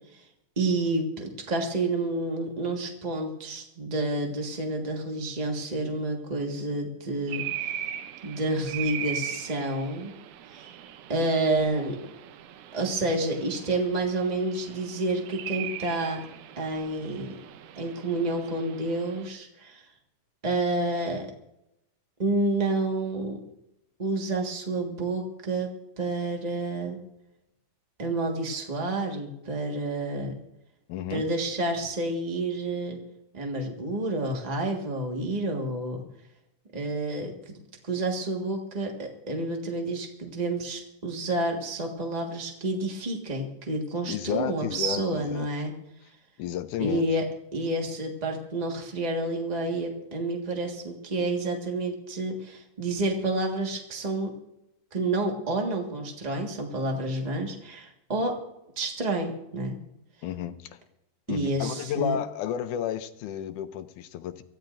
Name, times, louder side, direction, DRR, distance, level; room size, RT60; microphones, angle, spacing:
voice 1, 0.6-7.8 8.2-10.1 10.5-10.7 11.1-12.0 12.7-16.2 16.6-17.4 17.7-19.8 20.4-21.3 22.2-23.4 24.0-27.0 28.0-30.3 31.1-33.0 33.3-36.0 36.7-45.7 46.8-47.2 47.5-54.3 54.9-58.4 58.8-59.8 61.3-62.2, right 2 dB, 35° right, 1 dB, 0.6 m, -29 dB
sound 1, 7.3-19.3, right 11 dB, 75° right, 2.1 m, -39 dB
voice 2, 30.9-31.2 44.1-45.5 46.4-47.0 60.2-60.8 61.3-64.4, left 10 dB, 75° left, 11 dB, 2.1 m, -32 dB
25.0 x 15.0 x 2.6 m, 0.86 s
omnidirectional pair, 3.7 m